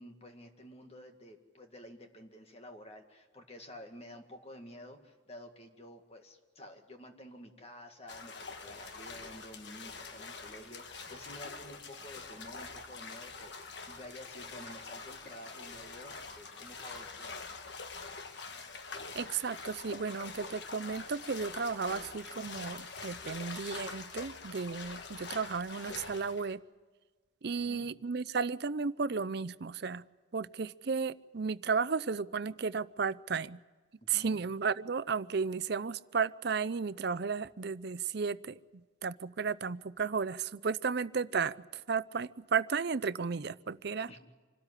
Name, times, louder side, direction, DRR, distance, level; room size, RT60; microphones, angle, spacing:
voice 1, 0.0-17.6 27.6-27.9 34.1-34.4 44.1-44.2, left 1 dB, 30° left, 4 dB, 2.0 m, -51 dB
sound 1, 8.1-26.5, left 4 dB, 60° left, 1.4 m, -45 dB
sound 2, 8.6-23.4, left 1 dB, 75° left, 7.7 m, -61 dB
voice 2, 19.1-26.6 27.4-30.0 30.3-33.6 34.1-38.6 39.0-44.1, right 5 dB, 55° right, 17 dB, 0.5 m, -34 dB
26.0 x 13.0 x 10.0 m, 1.5 s
head